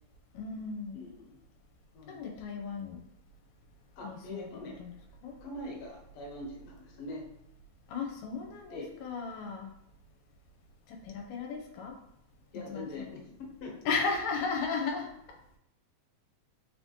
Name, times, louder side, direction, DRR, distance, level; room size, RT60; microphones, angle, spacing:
voice 1, 0.3-1.1 2.1-3.0 4.0-4.9 5.2-5.3 7.9-9.7 10.9-11.9 12.7-13.2 13.9-15.1, left 5 dB, 85° left, 1 dB, 2.0 m, -35 dB
voice 2, 0.9-1.4 1.9-2.3 4.0-4.7 5.4-7.2 8.7-8.9 12.5-13.9, left 1 dB, 60° left, -1 dB, 1.9 m, -43 dB
4.7 x 3.5 x 2.8 m, 0.83 s
omnidirectional pair, 3.3 m